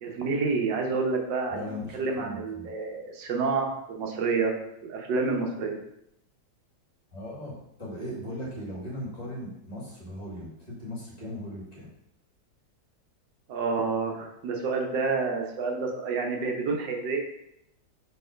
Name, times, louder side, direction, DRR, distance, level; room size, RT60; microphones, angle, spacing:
voice 1, 0.0-4.5 4.8-5.8 13.5-17.2, right 4 dB, 90° right, 2 dB, 1.7 m, -29 dB
voice 2, 1.5-2.7 7.1-11.9, left 1 dB, 20° left, -7 dB, 2.2 m, -38 dB
4.7 x 4.2 x 5.0 m, 0.78 s
omnidirectional pair, 1.9 m